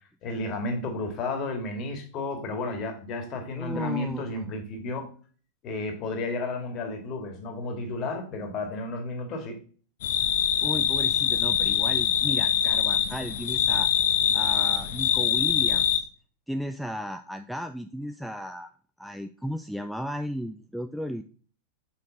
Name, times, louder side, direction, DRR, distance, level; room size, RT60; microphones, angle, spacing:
voice 1, 0.2-5.1 5.6-9.6, left 2 dB, 35° left, 4 dB, 1.9 m, -32 dB
voice 2, 3.5-4.5 10.6-13.9 14.3-16.1 16.5-18.7 19.0-21.2, equal, ahead, 8 dB, 0.4 m, -35 dB
sound 1, 10.0-16.0, left 9 dB, 55° left, 0.7 m, -24 dB
6.5 x 5.1 x 3.9 m, 0.40 s
figure-of-eight pair, 90°, 0 cm